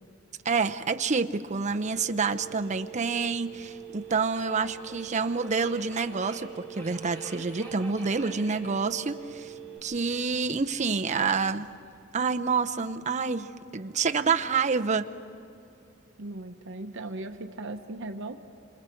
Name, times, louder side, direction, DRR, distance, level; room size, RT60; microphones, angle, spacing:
voice 1, 0.4-9.5 9.8-11.7 12.1-15.1, right 5 dB, 35° right, 7 dB, 0.7 m, -28 dB
Subway metro underground, 1.4-12.0, right 1 dB, 10° left, 4.4 m, -49 dB
Telephone, 1.8-9.8, right 12 dB, 10° right, 3.5 m, -44 dB
voice 2, 16.2-18.4, right 2 dB, 65° right, 6 dB, 1.0 m, -38 dB
27.5 x 27.5 x 4.5 m, 2.7 s
head